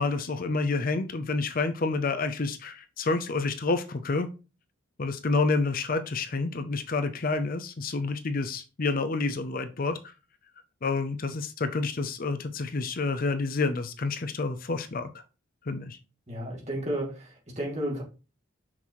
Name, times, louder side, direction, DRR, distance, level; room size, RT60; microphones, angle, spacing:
voice 1, 0.0-4.3 5.0-10.1 10.8-15.1 15.6-16.0, left 3 dB, 45° left, 0.5 m, -29 dB
voice 2, 16.3-18.0, right 1 dB, 35° right, 2.4 m, -32 dB
6.0 x 5.9 x 3.1 m
head